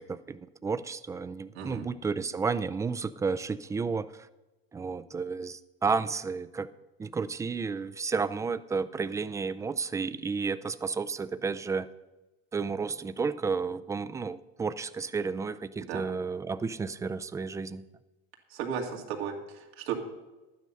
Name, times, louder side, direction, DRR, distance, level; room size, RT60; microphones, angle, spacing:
voice 1, 0.0-4.3 4.7-6.7 7.0-11.9 12.5-17.8, right 5 dB, 10° right, 13 dB, 0.3 m, -32 dB
voice 2, 18.5-19.9, right 7 dB, 85° right, 1 dB, 2.2 m, -35 dB
11.5 x 9.3 x 5.5 m, 1.1 s
supercardioid pair, 115°, 31 cm